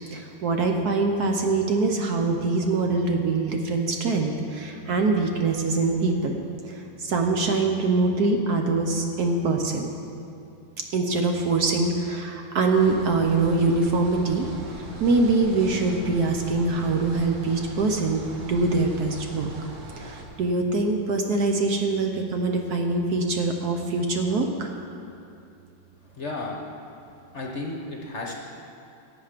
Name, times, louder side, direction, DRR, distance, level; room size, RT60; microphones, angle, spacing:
voice 1, 0.1-6.4 6.6-9.9 10.9-14.5 15.0-18.2 18.5-19.5 20.0-24.7, right 3 dB, 60° right, 3 dB, 1.2 m, -24 dB
sound 1, 12.7-20.2, right 1 dB, 90° right, 2.2 m, -40 dB
voice 2, 26.2-26.6 27.3-28.4, left 2 dB, 45° left, 0 dB, 1.1 m, -33 dB
16.5 x 8.2 x 5.1 m, 2.6 s
omnidirectional pair, 2.1 m